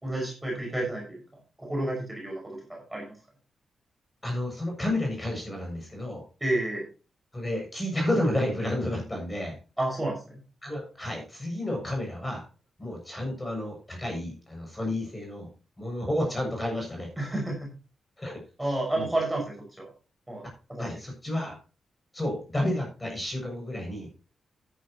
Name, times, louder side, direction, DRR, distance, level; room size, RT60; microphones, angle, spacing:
voice 1, 0.0-1.2 1.6-3.1 6.4-6.8 9.8-10.4 17.2-17.7 18.6-19.9 20.3-20.9, right 1 dB, 10° right, -1 dB, 6.1 m, -30 dB
voice 2, 4.2-6.2 7.3-9.6 10.6-12.5 12.8-15.5 15.8-17.1 18.2-18.4 18.7-19.1 19.3-19.4 20.8-21.6 22.1-24.1, left 1 dB, 15° left, 1 dB, 7.3 m, -31 dB
13.5 x 10.5 x 3.1 m, 0.34 s
cardioid pair, 100°, 0 cm